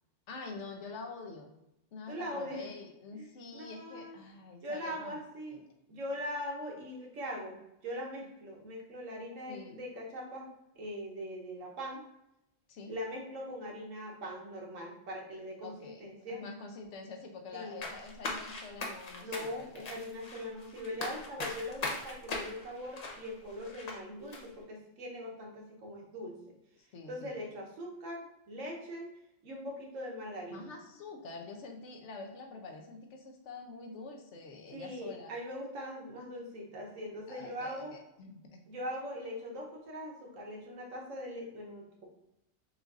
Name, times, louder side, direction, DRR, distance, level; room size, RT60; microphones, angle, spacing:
voice 1, 0.3-1.5 1.9-5.2 5.5-5.6 9.5-9.8 12.7-12.9 15.6-16.1 16.4-20.0 26.8-27.3 30.5-35.3 37.3-38.6, left 4 dB, 70° left, 3 dB, 1.0 m, -46 dB
voice 2, 2.1-2.7 3.1-3.3 3.5-4.2 4.6-5.6 5.9-10.5 10.7-12.0 12.9-16.4 17.5-17.8 19.2-26.4 27.1-29.1 29.4-30.7 34.7-37.9 38.7-42.1, equal, 85° right, -1 dB, 1.3 m, -41 dB
sound 1, 17.8-24.0 24.3-24.4, left 2 dB, 45° left, 0.6 m, -40 dB
6.2 x 2.5 x 2.4 m, 0.85 s
omnidirectional pair, 1.3 m